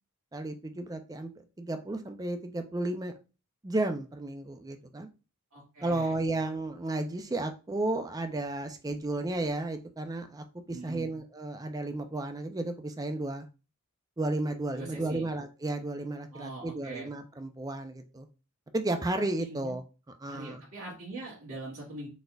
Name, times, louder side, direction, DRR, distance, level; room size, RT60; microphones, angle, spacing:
voice 1, 0.3-3.1 3.6-5.1 5.8-13.5 14.2-18.3 18.7-19.8 20.2-20.6, right 2 dB, 15° right, 7 dB, 0.4 m, -33 dB
voice 2, 5.5-6.2 10.7-11.1 14.7-15.3 16.3-17.1 19.1-19.8 20.2-22.1, right 2 dB, 85° right, -7 dB, 1.7 m, -42 dB
4.1 x 3.8 x 2.3 m, 0.32 s
head